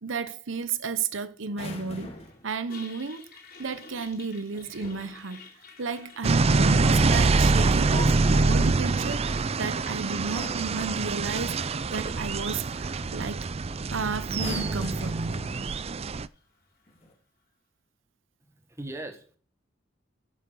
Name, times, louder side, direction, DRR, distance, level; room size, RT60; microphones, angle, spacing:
voice 1, 0.0-2.1 2.4-3.2 3.6-5.5 5.8-13.5 13.9-15.2, right 4 dB, 80° right, 0.9 m, -33 dB
sound 1, 1.5-2.4 4.5-5.2 7.3-8.7 9.7-10.0 10.3-10.8 12.5-12.7 13.0-13.3 14.3-15.9 16.9-17.1, left 1 dB, 35° left, 2.9 m, -41 dB
Toilet flush, 1.9-17.1, left 4 dB, 50° left, 3.8 m, -53 dB
sound 2, 6.2-16.3, right 3 dB, 30° right, 0.5 m, -25 dB
voice 2, 18.5-19.4, right 1 dB, 15° right, 1.7 m, -39 dB
11.5 x 8.1 x 6.3 m
head